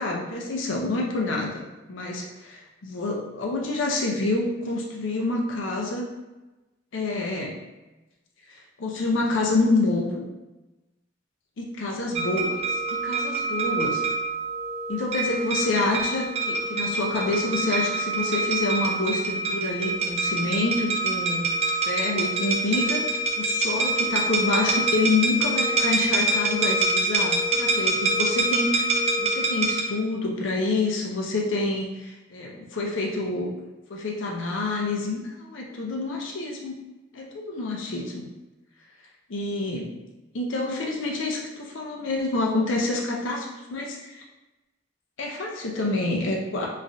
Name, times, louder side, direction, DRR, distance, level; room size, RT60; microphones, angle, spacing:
voice 1, 0.0-1.6 1.9-6.1 6.9-7.6 8.5-10.2 11.6-14.0 14.9-21.5 21.8-23.1 23.3-33.5 33.9-36.8 37.1-38.3 39.3-39.9 40.3-44.2 45.2-46.7, left 2 dB, 70° left, -1 dB, 0.5 m, -27 dB
sound 1, 12.1-29.8, right 2 dB, 35° right, 0.4 m, -26 dB
3.1 x 2.4 x 2.5 m, 1.1 s
head